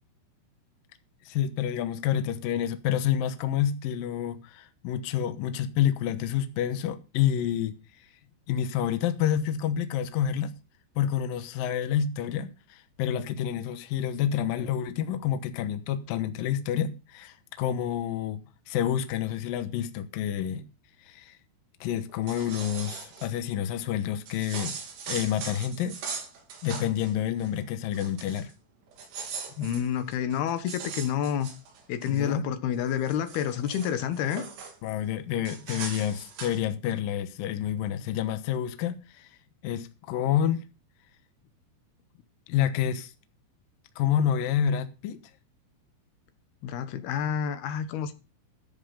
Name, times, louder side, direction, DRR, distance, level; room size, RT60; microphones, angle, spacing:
voice 1, 1.3-7.7 8.5-10.5 11.0-18.4 18.7-20.6 21.1-21.4 21.8-24.7 25.1-26.2 26.6-28.5 32.1-32.4 34.8-39.3 39.6-40.6 42.5-43.1 44.0-45.2, left 10 dB, 85° left, 2.0 m, -28 dB
sound 1, 22.1-23.3 24.3-27.1 27.4-27.6 27.9-28.5 28.9-32.2 32.7-34.7 35.4-36.6, right 5 dB, 55° right, 5.1 m, -40 dB
voice 2, 29.6-31.5 31.9-34.4 46.6-48.1, left 9 dB, 65° left, 2.8 m, -29 dB
14.0 x 7.6 x 5.6 m
omnidirectional pair, 5.8 m